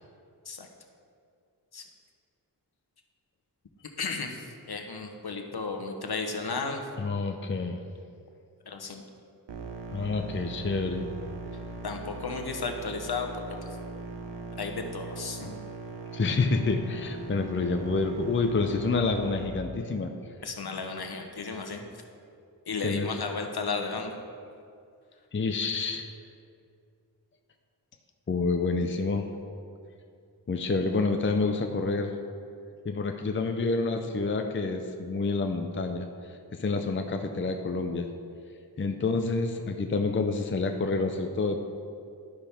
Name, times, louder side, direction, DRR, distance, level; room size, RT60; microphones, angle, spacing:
voice 1, 4.0-6.8 8.7-9.0 11.8-13.3 14.6-15.6 20.4-21.8 22.7-24.2, left 4 dB, 60° left, 4 dB, 1.0 m, -34 dB
voice 2, 7.0-7.8 9.9-11.1 16.1-20.1 22.8-23.1 25.3-26.1 28.3-29.3 30.5-32.2 32.8-36.1 36.5-38.1 38.8-41.6, left 3 dB, 30° left, 5 dB, 0.6 m, -28 dB
sound 1, 9.5-19.5, right 3 dB, 80° right, 0.8 m, -40 dB
11.5 x 5.7 x 3.5 m, 2.4 s
cardioid pair, 45°, 42 cm